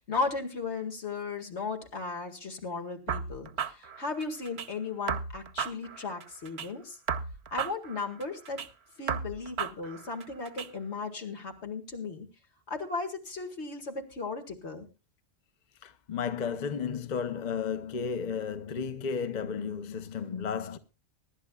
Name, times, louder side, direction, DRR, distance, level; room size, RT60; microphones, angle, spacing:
voice 1, 0.0-7.0 7.5-8.6 9.0-12.3 12.7-14.9, left 4 dB, 75° left, 2.3 m, -36 dB
sound 1, 3.1-4.7 5.1-6.7 7.1-8.7 9.1-10.7, right 6 dB, 70° right, 1.1 m, -35 dB
voice 2, 15.8-20.8, left 6 dB, 45° left, 0.9 m, -33 dB
24.0 x 11.5 x 2.3 m
omnidirectional pair, 1.1 m